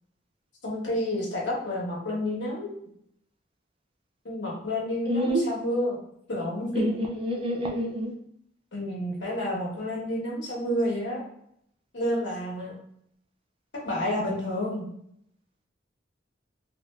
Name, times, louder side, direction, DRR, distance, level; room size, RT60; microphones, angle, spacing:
voice 1, 0.6-2.7 4.2-6.0 6.3-6.9 8.7-11.2 11.9-12.7 13.8-14.8, left 1 dB, 70° left, -4 dB, 1.3 m, -29 dB
voice 2, 5.0-5.5 6.7-8.2, equal, 30° right, 1 dB, 0.5 m, -27 dB
3.5 x 2.6 x 2.4 m, 0.70 s
head